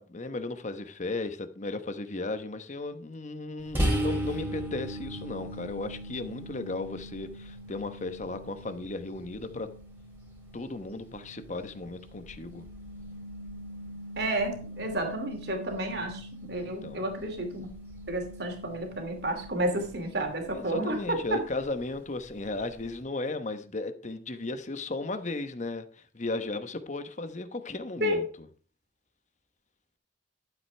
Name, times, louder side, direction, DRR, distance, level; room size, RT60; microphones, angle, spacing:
voice 1, 0.0-9.7 10.5-12.6 16.6-17.0 20.4-28.2, left 2 dB, 40° left, 1.0 m, -35 dB
sound 1, 3.7-21.2, equal, 15° right, 3.1 m, -38 dB
voice 2, 14.2-17.7 18.1-21.4 28.0-28.2, right 1 dB, 65° right, 2.7 m, -31 dB
12.0 x 7.9 x 3.4 m
head